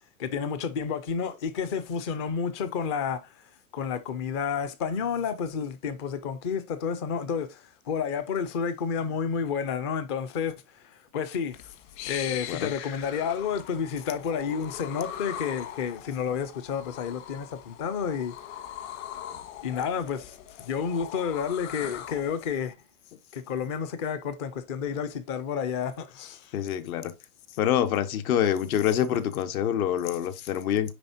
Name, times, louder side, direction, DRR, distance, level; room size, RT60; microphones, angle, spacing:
voice 1, 0.2-3.3 3.7-11.7 12.1-18.3 19.6-22.7 23.3-26.5 30.4-30.5, left 6 dB, 20° left, 0.3 m, -30 dB
sound 1, 11.5-22.5, left 10 dB, 45° left, 1.6 m, -41 dB
voice 2, 26.5-27.1 27.6-30.9, left 10 dB, 70° left, 1.3 m, -26 dB
9.9 x 3.6 x 2.6 m
supercardioid pair, 155°, 45 cm